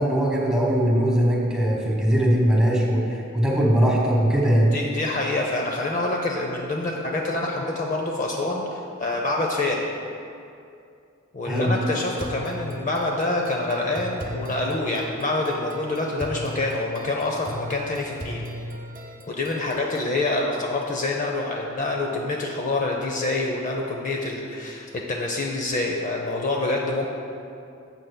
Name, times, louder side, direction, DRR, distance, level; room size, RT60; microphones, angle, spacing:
voice 1, 0.0-4.7 11.4-11.7, equal, 5° right, -3 dB, 1.3 m, -20 dB
voice 2, 4.7-9.8 11.3-18.5 19.3-27.1, left 2 dB, 40° left, 0 dB, 0.6 m, -26 dB
sound 1, 12.2-20.2, equal, 40° right, 0.9 m, -37 dB
12.0 x 7.6 x 2.2 m, 2.6 s
head